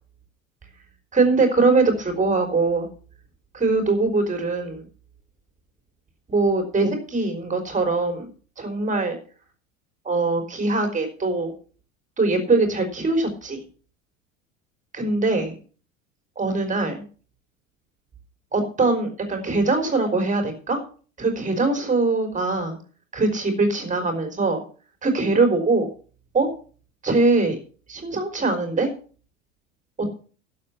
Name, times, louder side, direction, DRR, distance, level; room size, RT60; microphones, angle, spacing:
voice 1, 1.1-2.9 3.5-4.9 6.3-8.3 8.6-9.2 10.0-11.5 12.2-13.6 14.9-15.6 16.4-17.0 18.5-20.8 21.2-22.8 23.1-24.6 25.0-25.9 26.3-26.5 27.0-27.6 27.9-28.9, right 3 dB, 20° right, 6 dB, 4.1 m, -22 dB
12.0 x 7.8 x 7.1 m, 0.41 s
figure-of-eight pair, 75°, 39 cm